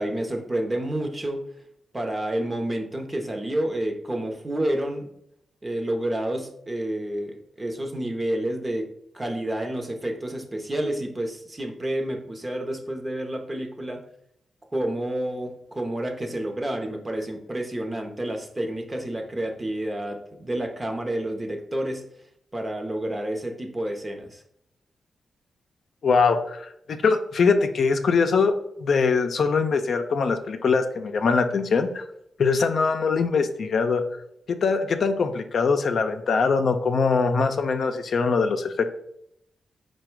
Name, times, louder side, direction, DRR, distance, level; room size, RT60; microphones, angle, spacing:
voice 1, 0.0-1.4 1.9-5.1 5.6-8.9 9.1-14.0 14.7-22.0 22.5-24.4, right 1 dB, 25° right, 4 dB, 0.8 m, -29 dB
voice 2, 26.0-32.0 32.4-34.0 34.5-38.9, left 4 dB, 65° left, 6 dB, 0.4 m, -22 dB
4.7 x 2.2 x 4.5 m, 0.74 s
cardioid pair, 80°, 0 cm